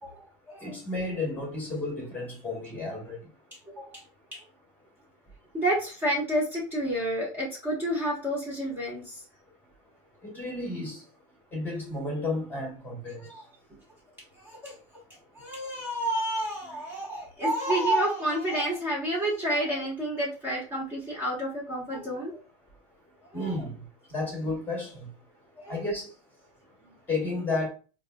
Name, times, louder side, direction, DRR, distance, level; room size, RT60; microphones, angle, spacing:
voice 1, 0.0-0.7 3.8-4.0 4.3-4.4 5.5-9.2 13.3-13.4 14.4-14.7 15.4-22.4 23.3-23.5 25.6-25.8, right 1 dB, 10° right, 1.0 m, -30 dB
voice 2, 0.6-3.2 10.2-11.0 11.5-13.2 16.7-16.8 23.3-23.8 24.1-25.1 25.7-26.1 27.1-27.7, left 2 dB, 10° left, 1.1 m, -32 dB
4.7 x 2.6 x 2.2 m
supercardioid pair, 170°, 17 cm